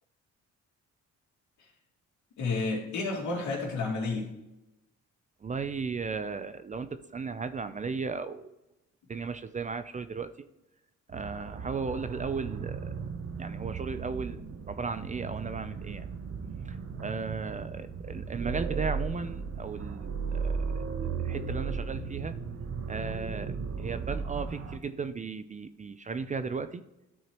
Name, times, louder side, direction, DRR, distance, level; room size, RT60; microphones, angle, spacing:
voice 1, 2.4-4.3, left 3 dB, 70° left, -1 dB, 2.3 m, -31 dB
voice 2, 5.4-8.5 9.1-10.3 11.1-12.9 13.4-16.1 16.7-20.7 21.2-22.3 22.9-26.8, right 5 dB, 25° right, 12 dB, 0.4 m, -36 dB
sound 1, 11.1-24.8, right 5 dB, 50° right, 0.8 m, -36 dB
12.0 x 4.7 x 3.0 m, 0.95 s
cardioid pair, 90°, 30 cm